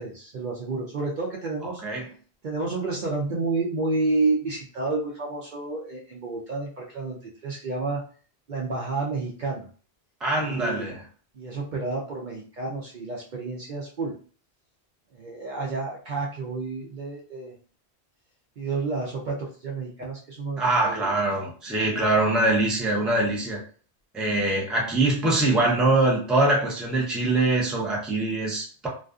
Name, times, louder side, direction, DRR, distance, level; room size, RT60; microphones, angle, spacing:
voice 1, 0.0-1.8 2.4-8.0 8.5-9.7 10.4-10.9 11.3-14.1 15.1-17.5 18.6-21.1, right 3 dB, 55° right, -2 dB, 0.6 m, -30 dB
voice 2, 10.2-10.9 20.6-23.6 24.1-28.9, right 2 dB, ahead, -3 dB, 0.4 m, -23 dB
2.5 x 2.3 x 2.3 m, 0.41 s
omnidirectional pair, 1.1 m